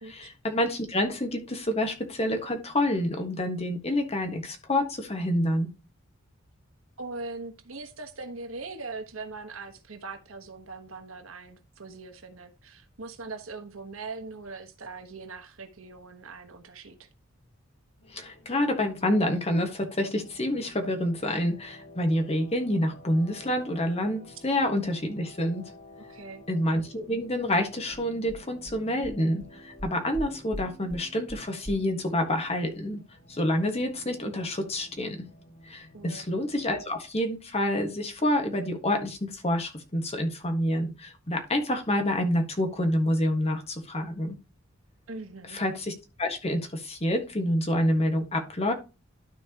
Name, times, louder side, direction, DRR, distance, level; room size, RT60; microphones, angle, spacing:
voice 1, 0.1-5.7 18.1-25.6 26.5-33.0 33.3-35.2 35.6-44.3 45.5-45.9 46.2-48.7, left 1 dB, 30° left, 5 dB, 1.5 m, -28 dB
voice 2, 7.0-17.1 26.0-26.4 35.9-36.2 45.1-45.6, right 3 dB, 80° right, 6 dB, 1.3 m, -41 dB
sound 1, 18.0-36.8, equal, 55° left, 3.1 m, -52 dB
sound 2, 27.9-28.0 28.3-28.4 28.7-28.8 29.0-29.1 29.4-29.5 29.8-30.2 30.5-30.6 30.9-31.0 31.3-31.4 31.6-31.7, equal, 20° right, 2.9 m, -38 dB
12.5 x 4.5 x 2.9 m, 0.29 s
head